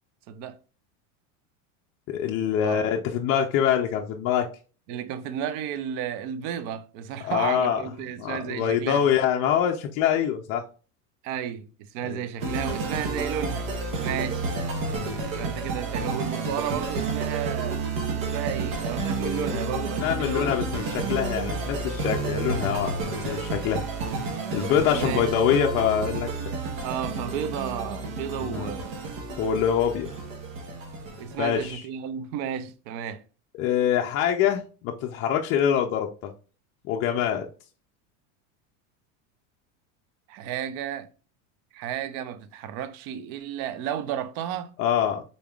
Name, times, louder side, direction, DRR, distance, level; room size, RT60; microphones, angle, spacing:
voice 1, 0.3-0.6 2.6-2.8 4.9-9.0 11.2-13.7 14.0-14.5 15.3-17.8 18.1-20.7 24.9-25.3 26.8-28.9 31.2-33.2 40.3-41.1 41.7-44.7, right 9 dB, 45° right, 0.5 m, -33 dB
voice 2, 2.1-4.5 7.2-7.8 8.2-10.6 12.0-12.2 20.0-22.9 23.3-23.8 24.5-26.3 28.4-28.7 29.4-30.2 31.4-31.8 33.6-36.1 36.8-37.5 44.8-45.2, left 9 dB, 35° left, 0.4 m, -24 dB
sound 1, 12.4-31.7, right 3 dB, 75° right, 1.2 m, -30 dB
4.0 x 3.4 x 2.3 m
supercardioid pair, 140°, 40 cm